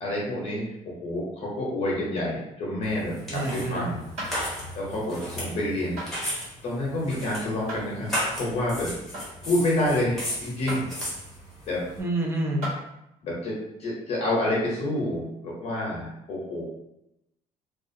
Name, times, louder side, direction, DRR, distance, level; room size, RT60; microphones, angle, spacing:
voice 1, 0.0-4.0 4.8-6.0 6.6-8.9 9.4-10.9 11.7-11.8 13.2-16.6, left 1 dB, 55° left, -4 dB, 0.7 m, -28 dB
sound 1, 2.8-12.0, equal, ahead, 0.8 m, -35 dB
voice 2, 3.3-3.9 12.0-12.7, right 2 dB, 20° right, -1 dB, 0.4 m, -28 dB
sound 2, 4.2-4.4 6.0-6.1 7.7-7.9 9.1-9.4 10.7-10.8 11.9-12.0 12.6-12.8 14.3-14.4, equal, 55° right, 1.3 m, -34 dB
2.4 x 2.3 x 2.6 m, 0.85 s
cardioid pair, 165°, 13 cm